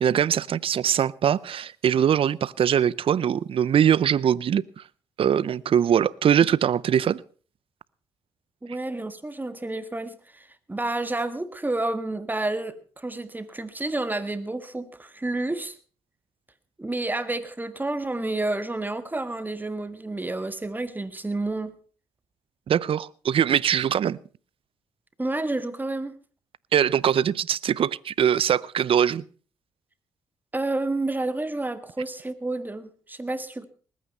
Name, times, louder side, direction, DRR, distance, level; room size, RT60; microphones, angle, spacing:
voice 1, 0.0-4.8 5.2-7.2 22.7-24.2 26.7-29.2, right 9 dB, 55° right, 0.6 m, -22 dB
voice 2, 8.6-15.8 16.8-21.8 25.2-26.1 30.5-33.7, right 2 dB, 15° right, 1.8 m, -30 dB
20.0 x 9.4 x 5.5 m
supercardioid pair, 60°, 11 cm